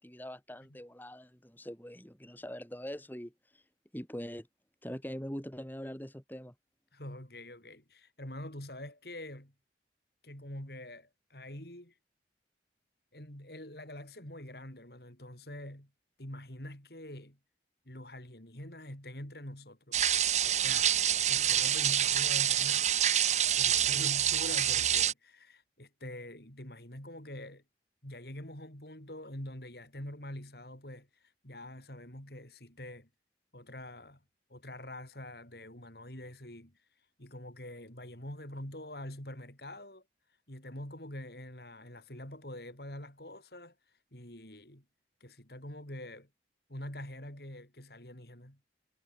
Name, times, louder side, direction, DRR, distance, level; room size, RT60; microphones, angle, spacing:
voice 1, 0.0-3.6 3.9-4.5 4.8-6.5, equal, 10° left, 2.3 m, -43 dB
voice 2, 6.9-9.5 10.2-11.9 13.1-15.9 16.2-17.4 17.9-20.1 20.4-22.9 23.5-27.6 28.0-33.1 33.5-34.2 34.5-36.8 37.2-40.0 40.5-43.7 44.1-44.8 45.2-46.3 46.7-48.6, left 1 dB, 60° left, 5.7 m, -45 dB
sound 1, 19.9-25.1, right 10 dB, 40° right, 1.4 m, -27 dB
head